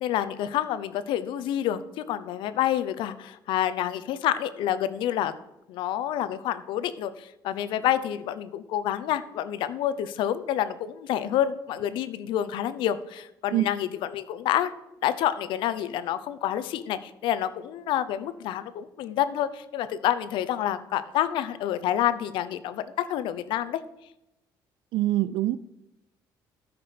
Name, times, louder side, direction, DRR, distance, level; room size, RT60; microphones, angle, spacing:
voice 1, 0.0-5.3 5.7-14.7 15.0-23.8, left 11 dB, 80° left, 0.7 m, -28 dB
voice 2, 24.9-25.6, right 15 dB, 90° right, 0.4 m, -24 dB
13.5 x 5.9 x 5.1 m
cardioid pair, 155°, 8 cm